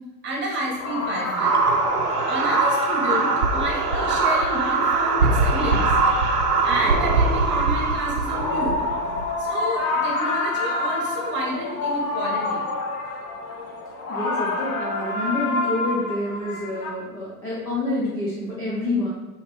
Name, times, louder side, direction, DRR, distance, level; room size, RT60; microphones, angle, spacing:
voice 1, 0.2-1.6 2.3-5.9 6.6-8.8 9.4-12.6, equal, 25° right, -2 dB, 1.3 m, -30 dB
sound 1, 0.6-16.9, left 3 dB, 30° left, 0.7 m, -28 dB
sound 2, 1.3-9.3, right 4 dB, 85° right, 0.7 m, -22 dB
voice 2, 14.1-19.1, left 2 dB, 10° left, -7 dB, 0.3 m, -27 dB
5.6 x 2.7 x 3.4 m, 1.1 s
figure-of-eight pair, 95°, 45 cm